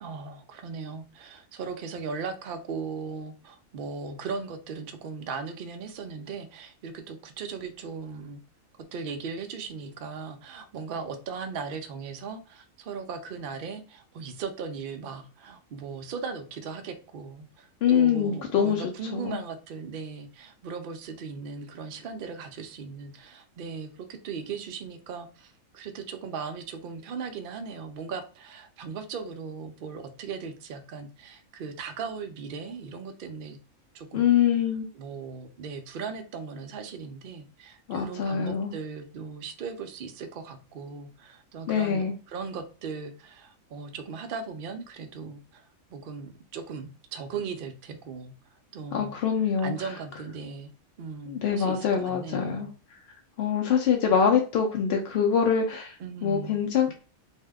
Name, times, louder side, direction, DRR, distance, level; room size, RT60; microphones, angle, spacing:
voice 1, 0.0-8.4 8.9-33.6 33.9-34.3 34.9-45.6 45.9-49.1 49.6-50.7 51.0-52.7 56.0-56.6, right 5 dB, 80° right, 6 dB, 0.4 m, -38 dB
voice 2, 17.8-18.8 19.1-19.4 34.1-34.9 37.9-38.7 41.7-42.1 48.9-49.7 51.3-52.7 53.4-56.0 56.2-56.9, left 7 dB, 70° left, 2 dB, 0.6 m, -24 dB
2.6 x 2.1 x 3.4 m, 0.35 s
omnidirectional pair, 1.5 m